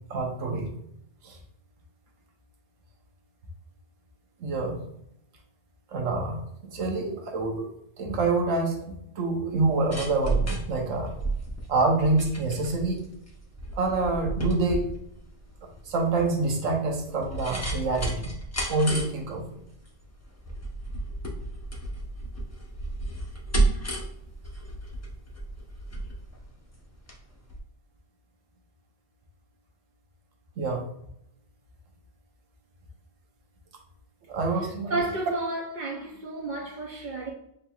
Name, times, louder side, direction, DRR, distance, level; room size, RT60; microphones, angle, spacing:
voice 1, 0.1-0.7 1.2-1.4 4.4-4.8 5.9-7.7 8.0-11.1 11.7-13.0 13.8-14.9 15.9-18.3 18.7-19.6 30.6-30.8 34.3-35.0, right 3 dB, 80° right, 1.2 m, -26 dB
sound 1, 9.5-27.2 27.5-27.6, right 2 dB, 15° left, 0.5 m, -32 dB
voice 2, 34.9-37.3, right 2 dB, 55° right, 0.6 m, -31 dB
6.5 x 2.9 x 2.3 m
omnidirectional pair, 1.3 m